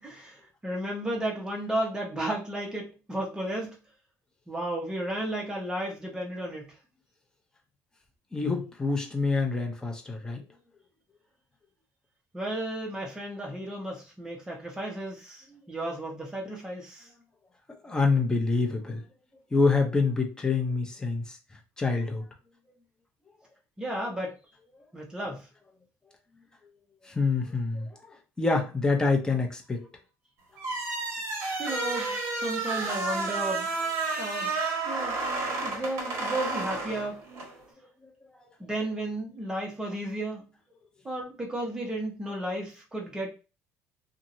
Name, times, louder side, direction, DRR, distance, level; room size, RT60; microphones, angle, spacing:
voice 1, 0.0-3.8 4.5-6.7 12.3-17.1 23.8-24.4 24.9-25.5 31.6-33.7 34.2-34.5 34.8-35.2 35.6-37.2 38.6-40.4 41.0-43.3, right 1 dB, 10° right, 1.0 m, -33 dB
voice 2, 8.3-10.4 17.8-19.0 19.5-21.4 21.8-22.3 27.1-27.9 28.4-29.8, left 4 dB, 10° left, 0.6 m, -26 dB
sound 1, 30.6-37.5, right 3 dB, 55° right, 1.3 m, -31 dB
2.8 x 2.5 x 2.6 m
cardioid pair, 135°, 6 cm